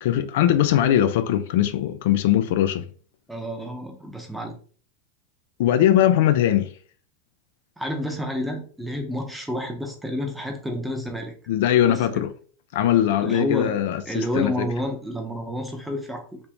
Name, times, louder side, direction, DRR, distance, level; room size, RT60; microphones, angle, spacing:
voice 1, 0.0-2.9 5.6-6.7 11.5-12.3 12.7-14.7, left 11 dB, 70° left, 0.3 m, -20 dB
voice 2, 3.3-4.6 7.8-11.3 11.9-12.2 13.2-13.8 14.1-16.4, left 1 dB, 5° right, 0.6 m, -29 dB
3.4 x 2.5 x 2.9 m
supercardioid pair, 155°, 0 cm